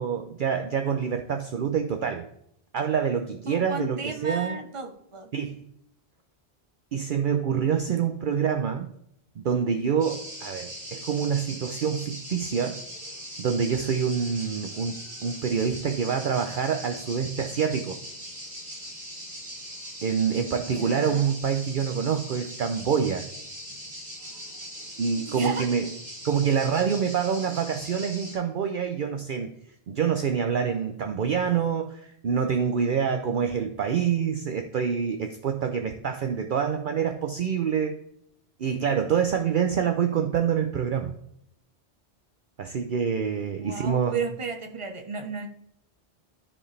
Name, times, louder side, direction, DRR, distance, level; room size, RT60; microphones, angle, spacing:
voice 1, 0.0-2.3 2.7-4.6 5.3-5.7 6.9-8.9 9.4-12.8 13.4-18.0 20.0-23.2 25.0-25.9 26.2-29.5 29.9-38.0 38.6-41.1 42.6-44.2, right 7 dB, 55° right, 6 dB, 0.7 m, -26 dB
voice 2, 3.4-5.3 7.9-8.0 20.7-21.3 25.2-25.7 43.6-45.5, right 4 dB, 30° right, 6 dB, 0.9 m, -34 dB
sound 1, 10.0-28.4, equal, 75° right, 3.5 m, -40 dB
13.5 x 4.7 x 3.2 m, 0.74 s
omnidirectional pair, 1.1 m